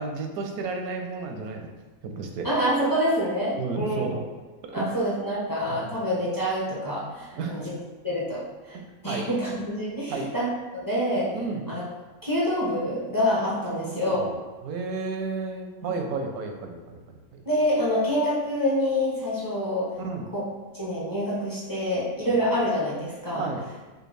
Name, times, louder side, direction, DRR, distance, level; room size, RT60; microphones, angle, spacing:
voice 1, 0.0-1.7 2.0-2.5 3.5-4.2 4.6-5.0 5.7-5.9 7.3-7.7 8.7-9.3 10.1-10.3 11.3-11.6 13.8-17.4 20.0-20.3 23.3-23.7, right 4 dB, 85° right, 3 dB, 1.1 m, -33 dB
voice 2, 2.4-4.0 4.7-7.7 8.0-8.8 9.0-10.5 10.7-11.3 11.7-11.8 12.2-14.2 17.5-19.9 20.3-20.4 20.7-23.5, equal, 25° left, -7 dB, 0.4 m, -26 dB
5.0 x 2.2 x 3.2 m, 1.2 s
omnidirectional pair, 1.5 m